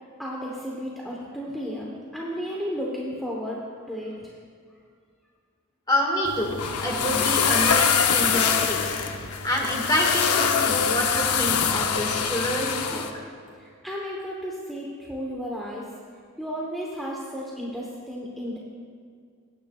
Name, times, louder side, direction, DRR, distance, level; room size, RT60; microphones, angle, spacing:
voice 1, 0.2-4.3 13.5-15.9 16.4-18.6, equal, ahead, -4 dB, 0.9 m, -33 dB
voice 2, 5.9-9.0 9.4-13.1, left 1 dB, 20° left, -1 dB, 1.7 m, -27 dB
sound 1, 6.2-13.1, left 7 dB, 85° left, 0.7 m, -24 dB
19.0 x 9.3 x 2.3 m, 2.1 s
head